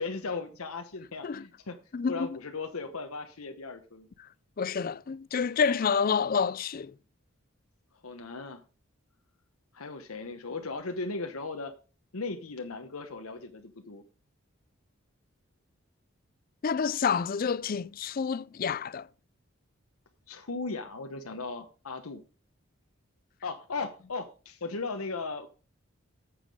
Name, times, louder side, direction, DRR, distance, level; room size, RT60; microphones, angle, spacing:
voice 1, 0.0-1.8 2.1-4.1 5.7-5.8 8.0-8.6 9.7-11.7 12.1-14.0 20.3-22.2 23.4-25.5, left 3 dB, 85° left, 1.0 m, -37 dB
voice 2, 4.6-6.9 16.6-19.1, left 6 dB, 40° left, 0.4 m, -28 dB
9.1 x 7.5 x 4.9 m
head